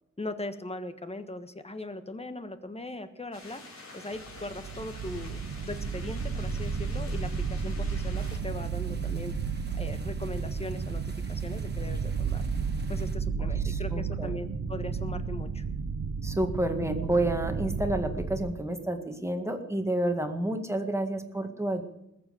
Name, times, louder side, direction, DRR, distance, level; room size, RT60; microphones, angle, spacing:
voice 1, 0.2-3.6 3.9-9.3 9.7-11.0 11.3-12.5 12.9-15.6, left 2 dB, 20° left, 9 dB, 1.4 m, -39 dB
sound 1, 3.3-8.4, left 2 dB, 65° left, 5.0 m, -47 dB
sound 2, 4.2-18.5, right 5 dB, 65° right, 1.0 m, -32 dB
sound 3, 8.1-13.2, right 2 dB, 35° right, 2.0 m, -53 dB
voice 2, 13.6-14.3 16.2-21.9, right 1 dB, 10° right, 5 dB, 1.9 m, -30 dB
20.5 x 7.6 x 8.0 m, 0.87 s
wide cardioid pair, 105°, 29 cm